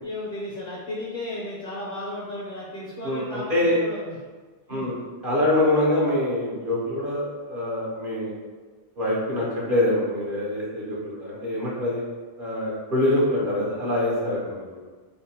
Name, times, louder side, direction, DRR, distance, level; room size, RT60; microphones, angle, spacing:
voice 1, 0.0-4.2 4.7-4.9, left 1 dB, 50° left, -7 dB, 0.8 m, -34 dB
voice 2, 3.0-3.8 4.7-5.0 5.2-8.4 9.0-12.0 12.4-14.8, left 1 dB, 50° right, -6 dB, 0.9 m, -25 dB
3.5 x 2.2 x 4.1 m, 1.4 s
omnidirectional pair, 1.2 m